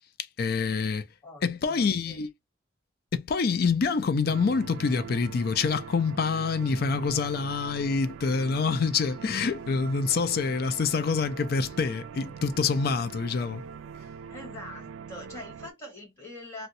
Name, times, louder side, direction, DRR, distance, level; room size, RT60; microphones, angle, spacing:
voice 1, 0.4-1.1 1.4-2.3 3.1-13.6, left 5 dB, 55° left, 0.4 m, -26 dB
voice 2, 1.2-2.2 14.3-16.7, left 1 dB, 15° left, 1.4 m, -44 dB
sound 1, 4.3-15.7, right 7 dB, 90° right, 0.3 m, -42 dB
2.6 x 2.1 x 3.9 m
head